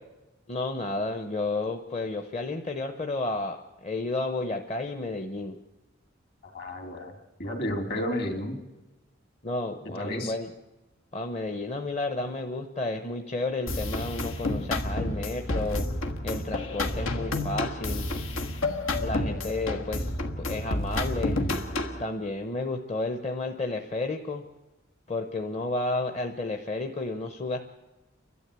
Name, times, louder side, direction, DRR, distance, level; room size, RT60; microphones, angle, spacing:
voice 1, 0.5-5.6 9.4-10.5 11.1-15.9 16.2-18.1 19.0-21.4 22.0-24.4 25.1-27.6, left 2 dB, 30° left, 5 dB, 0.9 m, -32 dB
voice 2, 6.4-7.1 7.4-8.6 9.8-10.3, left 1 dB, 50° left, 4 dB, 2.9 m, -32 dB
sound 1, 13.7-22.0, left 2 dB, 90° left, 1.6 m, -30 dB
29.5 x 12.5 x 8.3 m, 1.1 s
head